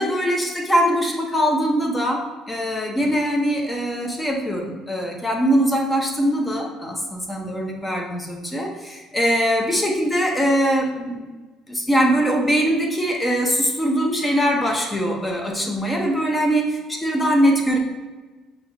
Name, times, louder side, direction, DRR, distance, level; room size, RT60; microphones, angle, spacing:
voice 1, 0.0-11.4 11.7-17.8, equal, 15° left, 1 dB, 0.7 m, -22 dB
5.8 x 2.9 x 2.7 m, 1.2 s
cardioid pair, 125°, 0 cm